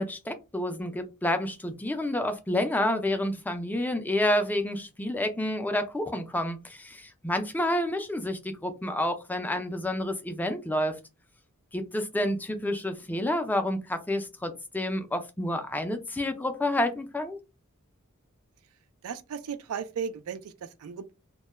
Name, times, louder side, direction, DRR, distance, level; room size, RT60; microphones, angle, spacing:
voice 1, 0.0-11.0 11.7-17.4, left 1 dB, 10° left, 0.3 m, -29 dB
voice 2, 19.0-21.1, right 6 dB, 75° right, 0.3 m, -36 dB
2.2 x 2.1 x 2.9 m
head